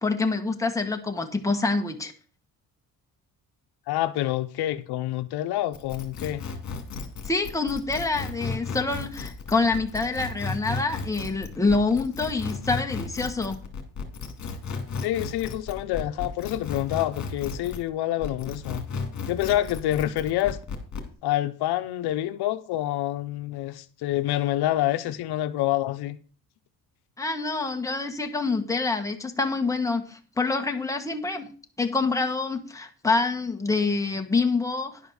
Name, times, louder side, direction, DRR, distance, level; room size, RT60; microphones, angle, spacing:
voice 1, 0.0-2.1 7.2-13.6 27.2-31.5 31.8-35.0, left 3 dB, 10° left, 1.2 m, -26 dB
voice 2, 3.9-6.4 15.0-18.8 19.3-20.6 21.2-26.2, left 14 dB, 85° left, 0.8 m, -27 dB
sound 1, 5.7-17.9 18.2-21.1, left 4 dB, 45° left, 2.3 m, -34 dB
10.5 x 5.1 x 6.4 m
cardioid pair, 125°, 38 cm